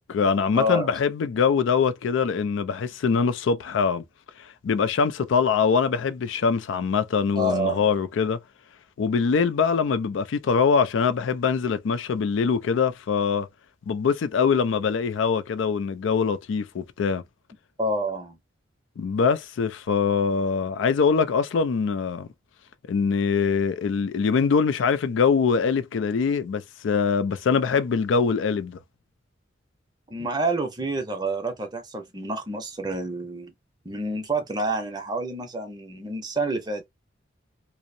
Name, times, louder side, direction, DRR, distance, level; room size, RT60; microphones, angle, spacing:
voice 1, 0.0-4.0 4.4-8.4 9.0-13.5 13.9-17.2 19.0-22.3 22.9-28.8, left 5 dB, 80° left, 0.4 m, -23 dB
voice 2, 0.5-0.9 7.3-7.9 17.8-18.4 30.1-33.5 33.8-36.8, right 1 dB, 20° right, 0.6 m, -28 dB
2.6 x 2.0 x 2.6 m
head